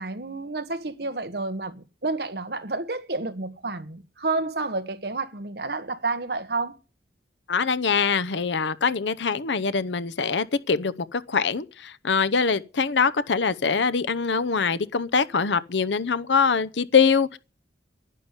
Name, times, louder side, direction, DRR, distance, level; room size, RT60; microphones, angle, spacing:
voice 1, 0.0-6.8, right 3 dB, 60° right, 1.4 m, -30 dB
voice 2, 7.5-17.4, left 5 dB, 80° left, 0.8 m, -23 dB
11.0 x 9.7 x 9.8 m
head